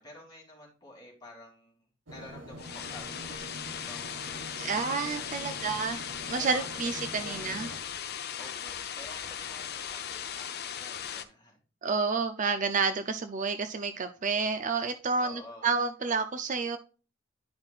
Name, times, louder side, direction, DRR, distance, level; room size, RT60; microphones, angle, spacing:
voice 1, 0.0-1.7 2.1-5.5 6.4-6.7 7.2-7.8 8.4-11.6 15.2-15.7, left 1 dB, 20° left, 3.1 m, -50 dB
sound 1, 2.1-7.8, right 1 dB, 70° right, 1.6 m, -45 dB
sound 2, 2.6-11.2, left 8 dB, 55° left, 0.6 m, -38 dB
voice 2, 4.6-7.7 11.8-16.8, right 4 dB, 40° right, 0.5 m, -30 dB
10.5 x 5.7 x 2.4 m
head